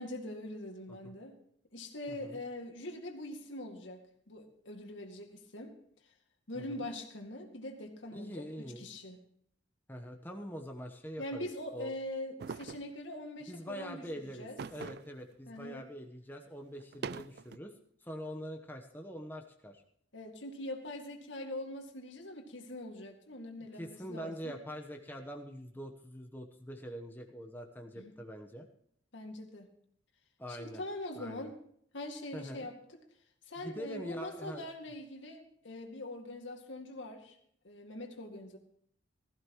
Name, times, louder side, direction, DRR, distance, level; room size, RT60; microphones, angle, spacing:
voice 1, 0.0-1.3 1.7-4.0 4.3-5.7 6.5-8.5 8.8-9.2 11.2-14.6 15.5-15.8 20.1-24.5 28.0-28.2 29.1-29.7 30.5-31.6 31.9-32.8 33.5-37.4 37.6-38.6, left 1 dB, 75° left, 4 dB, 2.2 m, -43 dB
voice 2, 2.1-2.4 6.5-6.8 8.1-8.8 9.9-11.9 13.4-17.7 18.0-19.8 23.7-28.7 30.4-30.8 31.2-31.5 32.3-32.7 33.6-34.7, equal, 10° left, 3 dB, 1.1 m, -44 dB
sound 1, 12.4-12.9 14.6-15.2 15.6-15.7 16.8-17.6, right 5 dB, 55° right, 0.4 m, -42 dB
16.0 x 14.5 x 3.1 m, 0.66 s
head